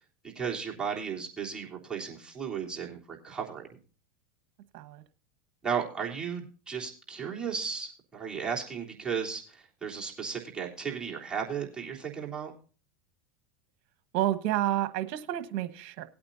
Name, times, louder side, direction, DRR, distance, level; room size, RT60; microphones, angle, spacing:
voice 1, 0.3-3.6 5.6-12.5, right 6 dB, 15° right, -3 dB, 3.3 m, -35 dB
voice 2, 14.1-16.0, right 13 dB, 60° right, 10 dB, 1.3 m, -30 dB
19.5 x 8.7 x 2.7 m, 0.37 s
supercardioid pair, 110°, 6 cm